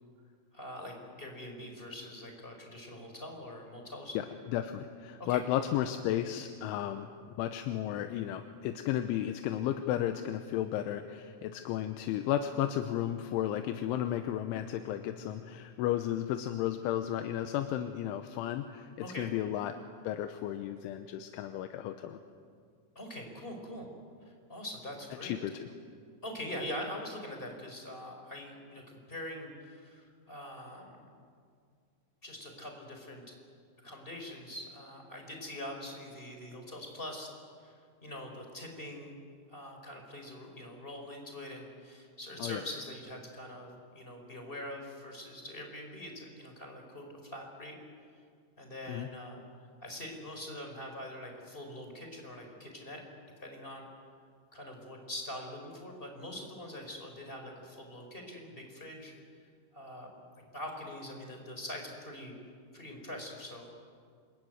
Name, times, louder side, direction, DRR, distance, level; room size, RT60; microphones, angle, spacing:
voice 1, 0.5-4.2 5.2-5.6 19.0-19.3 22.9-23.9 24.2-25.4 26.2-31.0 32.2-33.2 33.8-37.3 37.6-37.7 38.0-39.1 39.5-47.8 48.6-49.4 49.8-53.0 53.4-53.9 54.5-59.1 59.7-60.2 60.5-62.3 62.7-63.7, left 1 dB, 10° left, 2 dB, 4.0 m, -43 dB
voice 2, 4.1-7.1 7.4-18.9 19.2-19.8 20.0-22.2 25.2-25.5 42.4-42.6 48.9-49.1, left 11 dB, 80° left, 7 dB, 3.2 m, -33 dB
27.0 x 23.0 x 9.4 m, 2.2 s
omnidirectional pair, 5.7 m